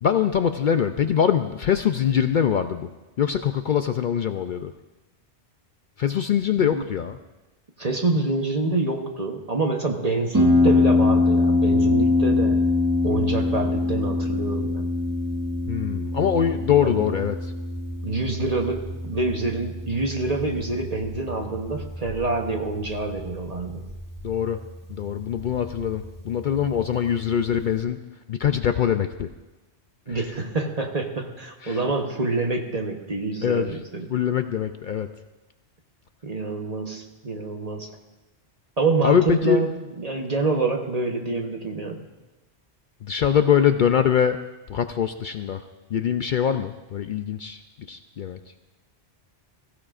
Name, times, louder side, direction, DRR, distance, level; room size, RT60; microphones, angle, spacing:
voice 1, 0.0-2.9 3.2-4.7 6.0-7.2 15.7-17.5 24.2-24.6 24.9-28.0 28.3-29.3 30.1-30.2 31.6-31.8 33.4-33.7 34.1-35.1 39.0-39.6 43.0-44.4 44.7-45.6 45.9-47.6 47.9-48.4, left 8 dB, 60° left, 8 dB, 0.6 m, -23 dB
voice 2, 7.8-12.6 13.0-14.9 16.8-17.2 18.0-23.9 30.1-34.1 36.2-37.9 38.8-42.0, right 3 dB, 35° right, 2 dB, 1.1 m, -27 dB
Harp, 10.3-27.8, left 2 dB, 15° right, 1.6 m, -25 dB
22.0 x 15.0 x 2.5 m, 1.1 s
omnidirectional pair, 1.1 m